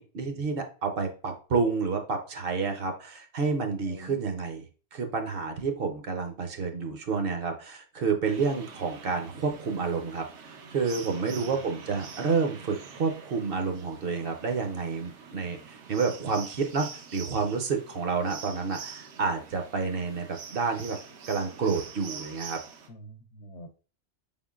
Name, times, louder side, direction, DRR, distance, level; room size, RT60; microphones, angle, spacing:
voice 1, 0.0-4.7 4.9-16.9 17.1-21.0 21.3-22.6, right 5 dB, 60° right, 5 dB, 0.8 m, -29 dB
voice 2, 3.9-4.2 11.2-11.6 22.9-23.7, right 2 dB, 80° left, 7 dB, 0.9 m, -45 dB
sound 1, 8.2-22.9, right 6 dB, 85° right, 1.0 m, -45 dB
4.5 x 3.7 x 2.3 m, 0.37 s
omnidirectional pair, 1.2 m